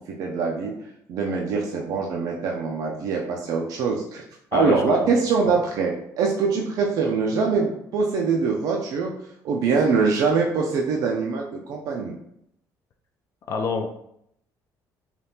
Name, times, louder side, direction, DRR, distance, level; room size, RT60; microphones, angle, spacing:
voice 1, 0.2-0.7 1.1-4.2 4.5-9.1 9.4-12.2, right 4 dB, 65° right, -1 dB, 0.4 m, -23 dB
voice 2, 4.5-5.1 13.5-14.0, left 5 dB, 50° left, 3 dB, 0.3 m, -27 dB
3.4 x 2.3 x 2.7 m, 0.76 s
cardioid pair, 145°, 7 cm